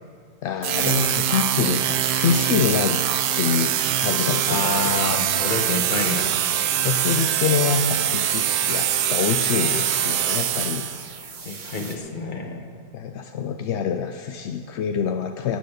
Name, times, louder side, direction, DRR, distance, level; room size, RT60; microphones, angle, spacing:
voice 1, 0.4-3.0 3.4-4.9 6.7-10.9 12.9-15.6, left 7 dB, 70° left, 7 dB, 0.6 m, -26 dB
sound 1, 0.6-11.2, right 10 dB, 85° right, 1.2 m, -23 dB
voice 2, 4.5-6.5 11.4-12.7, left 3 dB, 35° left, 5 dB, 1.1 m, -28 dB
sound 2, 6.9-12.0, right 5 dB, 40° right, 0.8 m, -40 dB
17.0 x 6.7 x 6.6 m, 2.2 s
omnidirectional pair, 1.6 m